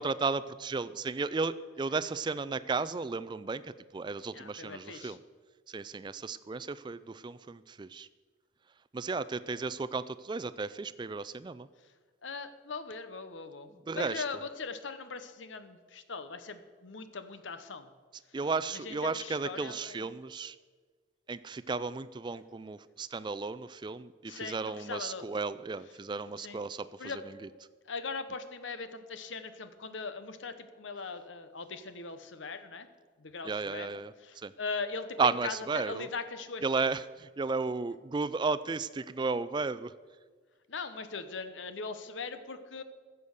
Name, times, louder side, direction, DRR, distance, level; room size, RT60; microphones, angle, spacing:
voice 1, 0.0-3.6 3.9-5.2 5.7-8.1 8.9-11.7 13.9-14.2 18.3-20.6 21.3-26.9 33.4-34.5 35.2-36.1 36.6-39.9, right 4 dB, 25° right, 15 dB, 0.3 m, -34 dB
voice 2, 4.3-5.2 11.8-11.9 12.2-17.9 18.3-18.4 18.7-20.1 24.3-25.3 26.4-26.6 27.0-27.2 27.9-32.9 33.2-36.7 40.7-42.8, left 4 dB, 80° left, 11 dB, 0.9 m, -40 dB
14.5 x 6.9 x 6.5 m, 1.5 s
head